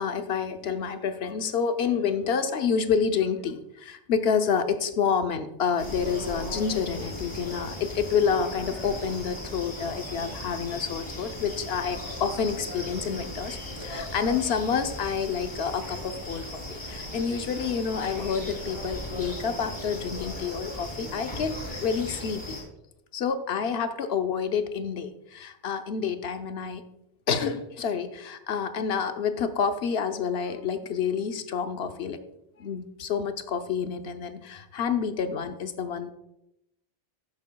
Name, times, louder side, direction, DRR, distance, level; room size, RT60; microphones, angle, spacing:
voice 1, 0.0-16.6 16.9-21.5 21.8-22.6 23.1-26.8 27.3-32.2 32.6-36.1, left 6 dB, 75° left, 8 dB, 0.9 m, -28 dB
sound 1, 5.8-22.6, left 1 dB, 25° left, 2.9 m, -37 dB
11.5 x 8.4 x 2.2 m, 0.84 s
omnidirectional pair, 1.1 m